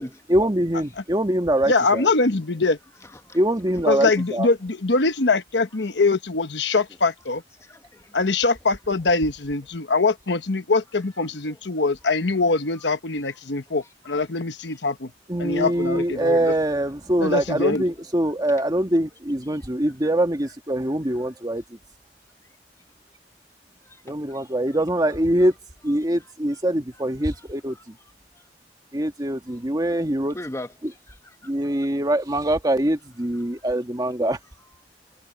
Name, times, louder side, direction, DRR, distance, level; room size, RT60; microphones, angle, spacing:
voice 1, 0.3-2.1 3.3-4.5 15.3-21.6 24.1-25.5 25.8-27.8 28.9-30.4 31.4-34.4, right 1 dB, 20° right, 1.7 m, -23 dB
voice 2, 1.7-2.8 3.9-7.4 8.1-15.1 15.4-16.5 17.2-17.8, left 3 dB, 75° left, 1.2 m, -23 dB
voice 3, 7.6-8.2 23.9-24.0 24.3-24.5 27.7-27.8 30.3-30.7 31.1-31.5, left 1 dB, 15° left, 1.2 m, -38 dB
head